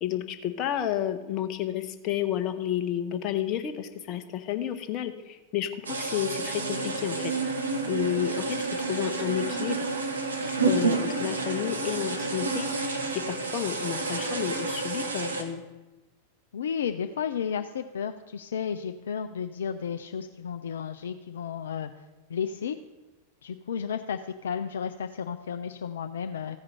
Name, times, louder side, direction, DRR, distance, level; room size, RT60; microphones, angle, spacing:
voice 1, 0.0-5.7 6.0-7.3 7.9-9.9 10.7-15.6, left 11 dB, 35° left, 8 dB, 0.8 m, -31 dB
sound 1, 5.9-15.4, right 3 dB, 75° right, 1.0 m, -29 dB
voice 2, 16.5-21.9 22.3-22.8 23.4-26.6, left 7 dB, 65° left, 7 dB, 0.4 m, -33 dB
14.5 x 5.0 x 5.7 m, 1.1 s
figure-of-eight pair, 90°, 0 cm